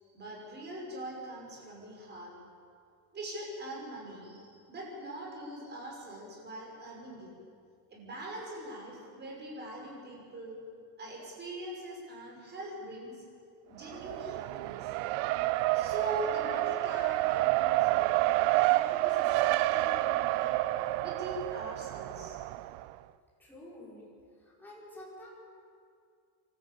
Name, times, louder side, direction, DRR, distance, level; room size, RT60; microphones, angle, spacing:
voice 1, 0.1-2.3 3.1-7.3 7.9-10.6 11.0-13.2 13.7-14.9 15.7-20.6 21.0-22.4, right 1 dB, 25° right, -2 dB, 5.8 m, -42 dB
Race car auto racing, 13.8-22.9, right 17 dB, 85° right, 0.7 m, -29 dB
voice 2, 23.4-24.1 24.4-25.3, left 1 dB, 5° left, -6 dB, 5.4 m, -49 dB
27.5 x 13.5 x 8.7 m, 2.3 s
cardioid pair, 175°, 43 cm